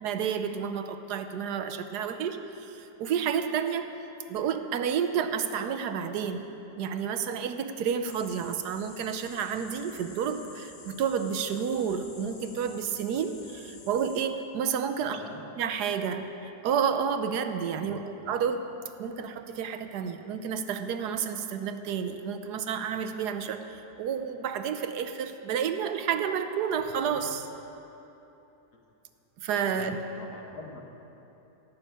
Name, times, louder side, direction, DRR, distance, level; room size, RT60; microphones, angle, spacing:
voice 1, 0.0-3.9 4.3-6.5 6.7-15.2 15.6-18.7 19.0-27.5 29.4-30.0, right 7 dB, 85° right, 9 dB, 1.3 m, -30 dB
sound 1, 8.1-14.3, left 4 dB, 45° left, 0.4 m, -50 dB
voice 2, 15.0-15.4 17.7-18.1 28.7-28.8 29.6-30.8, left 3 dB, 75° left, 1 dB, 2.0 m, -45 dB
17.5 x 6.5 x 8.5 m, 3.0 s
omnidirectional pair, 1.7 m